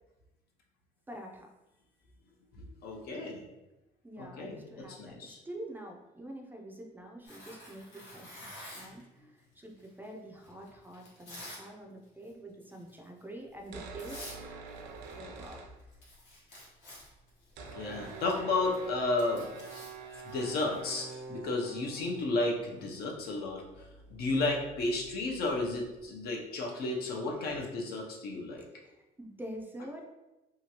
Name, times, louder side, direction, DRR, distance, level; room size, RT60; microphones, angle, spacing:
voice 1, 1.1-1.5 4.0-8.5 8.7-14.2 15.2-15.6 27.4-27.7 28.8-30.0, right 1 dB, 10° right, 1 dB, 0.4 m, -46 dB
voice 2, 2.6-3.4 4.2-5.4 17.8-19.5 20.2-23.6 24.1-28.6, left 2 dB, 65° left, 0 dB, 0.7 m, -33 dB
Tearing, 7.2-9.0 9.8-11.6 12.0-12.3 12.7-13.0 13.6-13.7 14.0-14.4 14.7-15.5 15.8-21.0, left 1 dB, 90° left, 1.1 m, -49 dB
sound 1, 13.6-16.3 16.6-16.7 16.8-26.3, right 4 dB, 75° right, 0.5 m, -47 dB
2.8 x 2.3 x 2.8 m, 0.99 s
cardioid pair, 110°, 17 cm